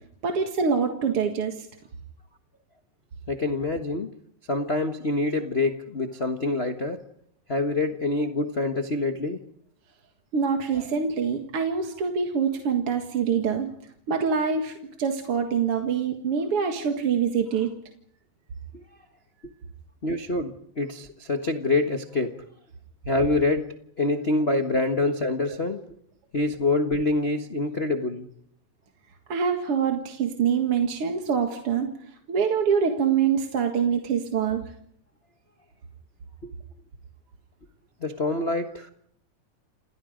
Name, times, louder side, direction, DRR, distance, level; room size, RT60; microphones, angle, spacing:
voice 1, 0.2-1.7 10.3-13.7 14.1-14.7 15.0-17.7 25.5-25.6 29.3-31.9 32.3-34.6, right 6 dB, 50° right, 4 dB, 2.4 m, -25 dB
voice 2, 3.3-4.1 4.5-7.0 7.5-9.4 18.7-18.8 20.0-22.4 23.0-23.7 24.0-25.8 26.3-28.3 36.4-36.5 38.0-38.9, left 2 dB, 80° left, 5 dB, 0.5 m, -26 dB
29.0 x 28.5 x 5.2 m, 0.67 s
omnidirectional pair, 3.7 m